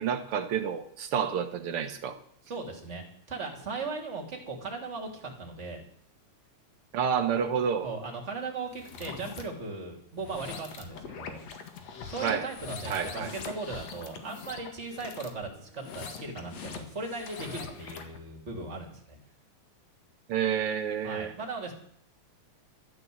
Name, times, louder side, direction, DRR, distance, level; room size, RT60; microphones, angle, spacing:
voice 1, 0.0-2.2 6.9-7.9 12.2-12.5 12.9-13.3 20.3-21.3, right 7 dB, 55° right, 7 dB, 2.2 m, -29 dB
voice 2, 2.5-5.8 7.8-11.4 12.0-19.2 21.0-21.7, right 3 dB, 25° right, 1 dB, 3.5 m, -38 dB
sound 1, 8.7-9.4 10.1-18.2, left 6 dB, 60° left, 2.9 m, -42 dB
13.0 x 12.5 x 8.0 m, 0.65 s
omnidirectional pair, 3.3 m